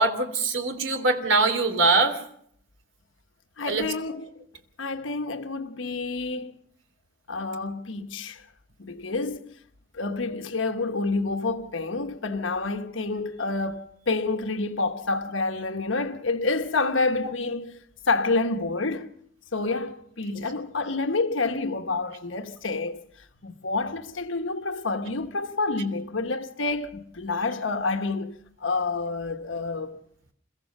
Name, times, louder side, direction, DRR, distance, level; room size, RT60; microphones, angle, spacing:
voice 1, 0.0-2.2 3.6-3.9 20.3-20.4, right 3 dB, 80° right, 3.1 m, -23 dB
voice 2, 3.6-4.3 4.8-6.6 7.3-8.4 8.8-9.5 9.9-19.1 19.5-30.0, left 3 dB, 85° left, 1.3 m, -28 dB
29.0 x 15.0 x 6.6 m
head